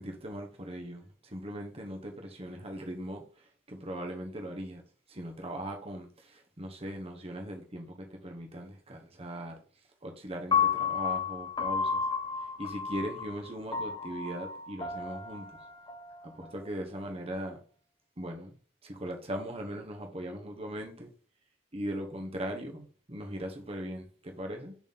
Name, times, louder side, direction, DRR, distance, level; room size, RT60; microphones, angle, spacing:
voice 1, 0.0-4.8 5.1-9.6 10.0-12.0 12.6-15.4 16.2-17.6 18.2-18.5 18.8-21.1 21.7-24.8, right 1 dB, 30° right, 1.2 m, -39 dB
Piano, 10.5-16.7, left 6 dB, 20° left, 0.9 m, -32 dB
7.1 x 4.1 x 4.1 m
head